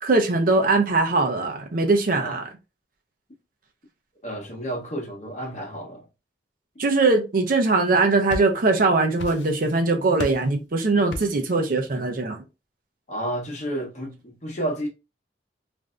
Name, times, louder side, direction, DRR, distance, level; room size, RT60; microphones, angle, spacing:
voice 1, 0.0-2.4 6.8-12.4, right 3 dB, 50° right, 0.6 m, -21 dB
voice 2, 4.2-6.1 13.1-14.9, right 1 dB, 40° left, 0.9 m, -31 dB
sound 1, 7.9-8.8 9.2-9.8 10.2-10.5 11.1-11.5, left 2 dB, 90° left, 0.5 m, -35 dB
3.2 x 2.6 x 2.4 m
head